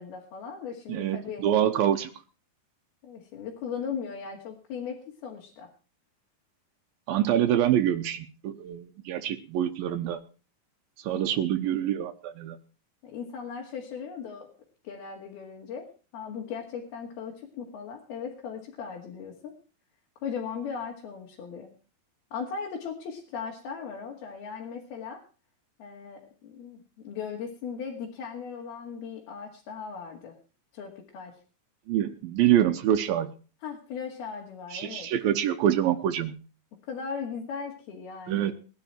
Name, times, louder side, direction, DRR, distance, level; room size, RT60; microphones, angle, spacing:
voice 1, 0.0-1.5 3.0-5.7 11.1-11.4 13.0-14.5 14.8-15.9 16.1-19.5 20.2-21.7 22.3-25.2 25.8-30.4 30.7-31.4 33.6-35.1 36.9-38.5, left 6 dB, 85° left, -1 dB, 4.1 m, -38 dB
voice 2, 0.9-2.1 7.1-10.2 11.0-12.6 31.9-33.3 34.7-36.3 38.3-38.5, right 11 dB, 80° right, 7 dB, 2.6 m, -25 dB
19.0 x 11.0 x 4.5 m, 0.36 s
omnidirectional pair, 4.3 m